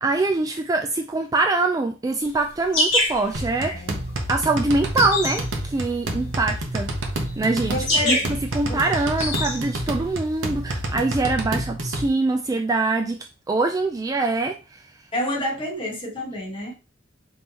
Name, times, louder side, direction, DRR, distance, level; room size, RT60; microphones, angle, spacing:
voice 1, 0.0-3.8 4.3-6.9 7.4-7.8 8.0-8.2 8.5-14.8, right 3 dB, 20° right, 4 dB, 0.3 m, -24 dB
sound 1, 2.2-10.9, left 1 dB, 60° left, 2.2 m, -27 dB
sound 2, 3.3-12.1, right 1 dB, 70° right, 1.0 m, -29 dB
voice 2, 3.6-4.0 7.6-8.3 8.7-8.8 15.1-16.7, left 1 dB, 25° left, -1 dB, 1.3 m, -28 dB
5.3 x 3.1 x 2.8 m, 0.31 s
head